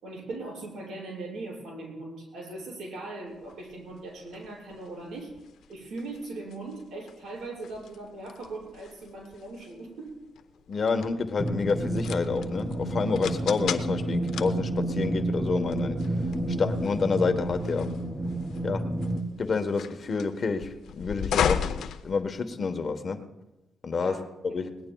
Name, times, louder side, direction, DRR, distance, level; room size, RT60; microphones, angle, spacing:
voice 1, 0.0-5.3 5.7-10.1 23.9-24.2 24.5-24.6, right 2 dB, 75° right, -3 dB, 6.4 m, -39 dB
sound 1, 3.4-22.8, left 8 dB, 80° left, 0.6 m, -37 dB
voice 2, 10.7-16.0 16.6-17.9 18.6-18.8 19.4-23.2 23.8-24.1 24.4-24.7, left 4 dB, 50° left, 8 dB, 1.2 m, -28 dB
sound 2, 11.4-19.2, right 1 dB, 30° right, 2.6 m, -30 dB
21.0 x 18.5 x 2.3 m, 1.0 s
cardioid pair, 85°, 0 cm